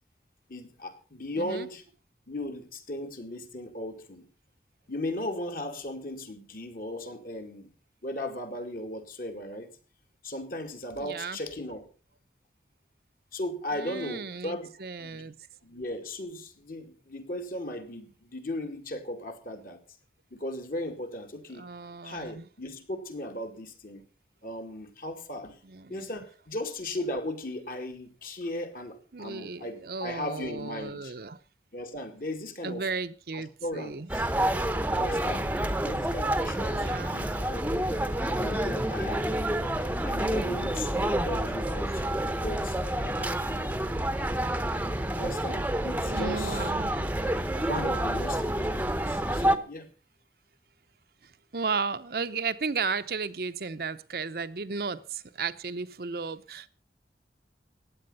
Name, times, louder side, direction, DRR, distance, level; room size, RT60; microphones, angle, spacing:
voice 1, 0.5-1.8 2.3-4.3 4.9-7.7 8.0-9.7 10.2-11.9 13.3-14.7 15.0-15.3 15.6-19.8 20.3-21.7 22.0-24.0 24.4-25.6 25.9-31.1 31.7-32.9 33.3-34.3 35.0-37.8 38.3-42.0 42.4-43.9 45.2-46.7 47.7-49.9, left 1 dB, 50° left, 5 dB, 2.3 m, -37 dB
voice 2, 1.3-1.7 11.0-11.4 13.7-15.3 21.5-22.5 25.6-26.3 29.1-31.4 32.6-34.1 36.7-37.2 46.0-47.1 51.2-56.7, right 4 dB, 55° right, 10 dB, 0.7 m, -35 dB
sound 1, 34.1-49.6, right 1 dB, 10° right, 0.8 m, -28 dB
15.5 x 9.8 x 5.5 m, 0.37 s
head